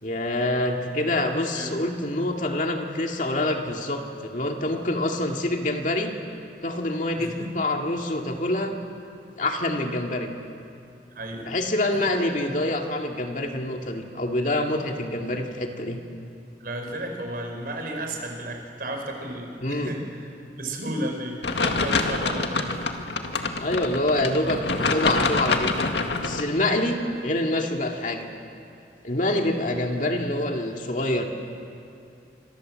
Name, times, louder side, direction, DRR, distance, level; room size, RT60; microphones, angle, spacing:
voice 1, 0.0-6.1 6.6-8.7 9.3-10.3 11.4-16.0 19.6-19.9 23.6-25.7 26.2-28.3 29.0-31.3, left 1 dB, 45° left, 2 dB, 2.3 m, -26 dB
voice 2, 7.2-7.5 11.1-11.5 11.9-12.0 16.6-20.3 20.6-22.9, right 1 dB, 55° right, 2 dB, 5.3 m, -33 dB
sound 1, 21.4-26.4, left 3 dB, 80° left, 1.9 m, -26 dB
28.5 x 26.5 x 7.8 m, 2.5 s
head